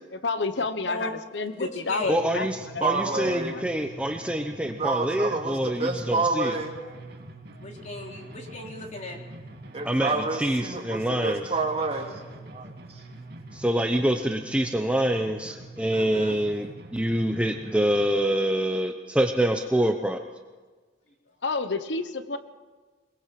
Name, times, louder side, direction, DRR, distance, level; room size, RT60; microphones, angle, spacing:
voice 1, 0.1-2.9 3.5-3.6 21.4-22.4, left 3 dB, 85° left, 11 dB, 1.1 m, -30 dB
voice 2, 1.4-2.3 7.6-9.2 15.9-16.4, left 2 dB, 40° left, 1 dB, 3.4 m, -37 dB
sound 1, 2.0-18.0, right 2 dB, 60° right, 2.3 m, -45 dB
voice 3, 2.1-6.5 9.8-10.1 10.4-11.4 13.5-16.7 16.9-20.2, right 1 dB, 5° right, 4 dB, 0.9 m, -26 dB
voice 4, 2.8-3.6 4.8-6.8 9.7-12.1 12.4-13.0, right 3 dB, 35° right, 1 dB, 2.8 m, -28 dB
22.0 x 22.0 x 6.0 m, 1.4 s
head